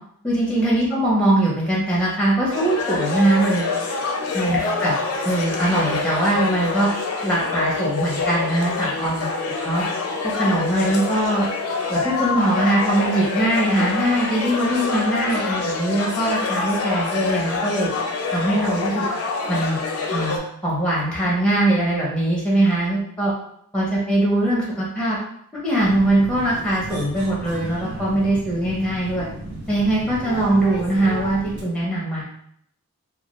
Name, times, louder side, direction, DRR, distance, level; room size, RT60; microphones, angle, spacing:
voice 1, 0.2-3.7 4.3-4.9 5.2-6.9 7.2-9.3 9.6-9.8 10.3-11.5 11.9-17.9 18.3-19.1 19.5-19.8 20.1-20.4 20.6-23.3 23.7-25.2 25.6-29.3 29.7-32.2, right 1 dB, 5° left, -6 dB, 0.6 m, -21 dB
sound 1, 2.5-20.4, left 4 dB, 80° left, 0.4 m, -26 dB
sound 2, 25.8-31.6, right 1 dB, 45° right, 0.6 m, -34 dB
2.2 x 2.2 x 2.9 m, 0.69 s
head